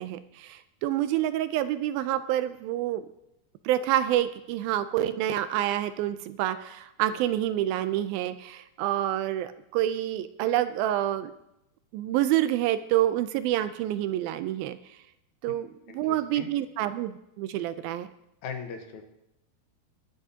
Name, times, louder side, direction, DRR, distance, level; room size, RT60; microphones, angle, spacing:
voice 1, 0.0-3.0 3.7-11.3 11.9-14.8 15.4-18.1, right 12 dB, 80° right, 12 dB, 2.2 m, -28 dB
voice 2, 15.9-16.5 18.4-19.0, left 6 dB, 65° left, 5 dB, 2.1 m, -39 dB
22.5 x 9.9 x 2.8 m, 0.85 s
omnidirectional pair, 4.6 m